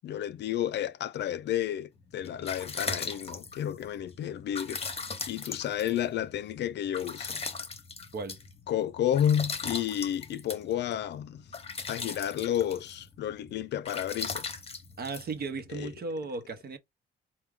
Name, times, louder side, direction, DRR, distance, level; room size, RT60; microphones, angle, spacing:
voice 1, 0.0-4.8 5.3-7.4 8.7-11.5 11.9-14.6 15.7-15.9, left 10 dB, 60° left, 0.4 m, -31 dB
sound 1, 2.0-16.0, left 4 dB, 30° left, 0.9 m, -39 dB
voice 2, 15.0-16.8, right 3 dB, 50° right, 0.9 m, -36 dB
4.5 x 2.3 x 3.5 m
cardioid pair, 90°, 20 cm